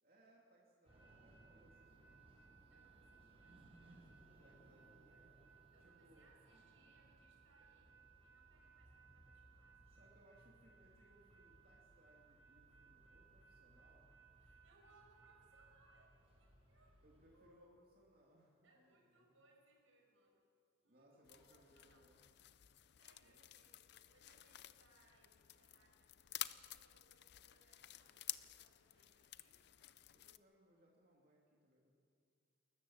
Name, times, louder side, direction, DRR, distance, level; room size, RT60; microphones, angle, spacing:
voice 1, 0.0-2.4 4.4-5.4 5.8-6.6 9.9-14.1 17.0-19.4 20.9-22.2 23.2-23.4 30.1-31.9, equal, 50° right, -3 dB, 2.7 m, -70 dB
sound 1, 0.8-17.5, right 3 dB, 30° right, 5.1 m, -65 dB
voice 2, 2.7-4.6 5.7-7.9 8.2-10.1 14.4-17.0 17.3-17.8 18.6-20.4 20.8-22.1 22.8-29.6, right 2 dB, 85° right, 0 dB, 6.2 m, -73 dB
sound 2, 21.2-30.4, left 13 dB, 55° left, 0.6 m, -52 dB
29.5 x 13.5 x 7.3 m, 2.3 s
head